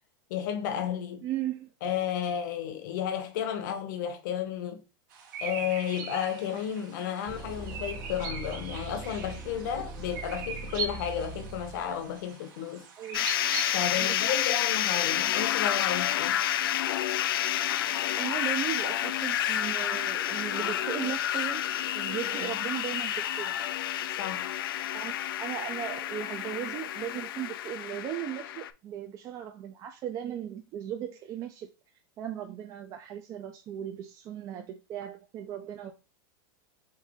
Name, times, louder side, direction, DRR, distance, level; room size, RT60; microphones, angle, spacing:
voice 1, 0.3-1.3 1.8-4.8 5.4-12.9 13.7-16.4 22.4-22.5 24.2-24.5, left 9 dB, 60° left, 0.8 m, -32 dB
voice 2, 1.2-1.7 13.0-13.3 13.9-14.4 18.2-21.6 21.9-23.6 24.9-25.1 25.4-31.7 32.2-35.9, right 10 dB, 30° right, 0.4 m, -37 dB
sound 1, 5.1-13.9, right 5 dB, 65° right, 1.1 m, -41 dB
sound 2, 7.3-12.2, right 2 dB, 10° left, 0.6 m, -41 dB
sound 3, 13.1-28.7, left 11 dB, 85° left, 0.4 m, -30 dB
4.0 x 2.6 x 3.6 m
supercardioid pair, 150°, 12 cm